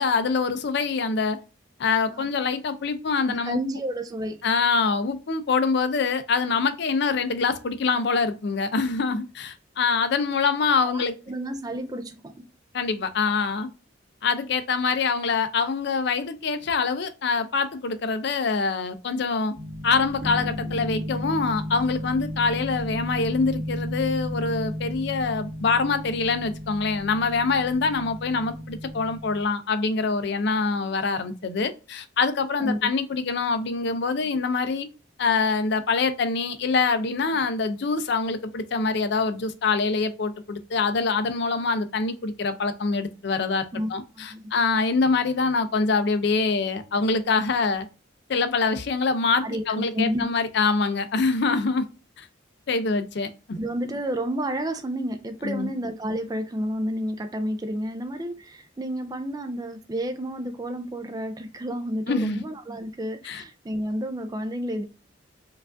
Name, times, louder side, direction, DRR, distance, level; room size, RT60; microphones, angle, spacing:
voice 1, 0.0-1.4 1.8-3.6 4.4-11.1 12.7-13.7 14.2-19.5 19.8-34.9 35.2-47.9 48.3-51.8 52.2-52.3 52.7-53.6 55.4-55.7 62.1-62.4 63.2-63.4, left 4 dB, 60° left, 0.4 m, -25 dB
voice 2, 3.2-4.4 10.8-12.5 32.6-32.8 43.7-44.5 49.4-50.2 53.6-64.8, equal, 20° right, 0.3 m, -30 dB
sound 1, 19.5-29.4, equal, 40° right, 0.8 m, -34 dB
4.5 x 2.4 x 2.5 m
head